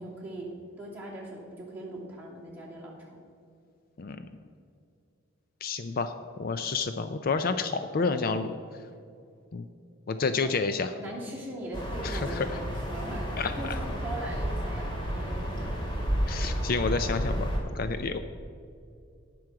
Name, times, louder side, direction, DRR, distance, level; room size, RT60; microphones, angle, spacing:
voice 1, 0.0-3.2 10.4-10.5 11.0-16.0, right 1 dB, 10° right, -6 dB, 2.6 m, -40 dB
voice 2, 5.6-8.5 9.5-9.7 10.1-10.9 12.0-12.6 13.4-13.8 16.3-18.2, left 4 dB, 50° left, 9 dB, 0.4 m, -30 dB
sound 1, 11.7-17.6, equal, 25° left, 2.3 m, -31 dB
18.0 x 6.2 x 4.8 m, 2.4 s
head